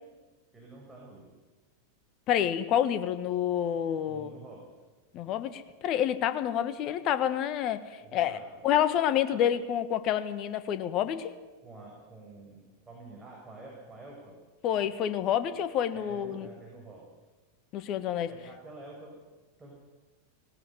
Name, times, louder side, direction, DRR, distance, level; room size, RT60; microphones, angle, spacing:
voice 1, 0.5-1.4 4.0-4.7 8.0-8.6 9.3-9.4 11.6-14.4 15.9-17.1 18.3-19.2 19.6-19.7, right 2 dB, 10° right, -3 dB, 6.2 m, -48 dB
voice 2, 2.3-4.3 5.1-8.4 8.6-11.3 14.6-16.5 17.7-18.3, left 10 dB, 35° left, 12 dB, 1.5 m, -28 dB
19.0 x 18.5 x 9.3 m, 1.2 s
figure-of-eight pair, 90°, 0 cm